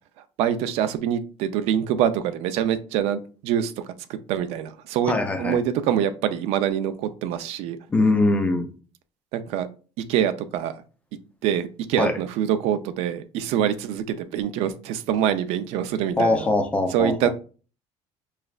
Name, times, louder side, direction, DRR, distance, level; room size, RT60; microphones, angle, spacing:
voice 1, 0.4-3.7 4.1-5.1 5.4-7.8 9.3-9.7 10.1-10.8 11.4-16.5 16.9-17.3, right 10 dB, 70° right, 11 dB, 0.4 m, -25 dB
voice 2, 5.1-5.6 7.9-8.7 12.0-12.1 16.2-17.3, left 2 dB, 10° left, 6 dB, 0.4 m, -22 dB
4.9 x 3.2 x 2.3 m, 0.37 s
cardioid pair, 175°, 11 cm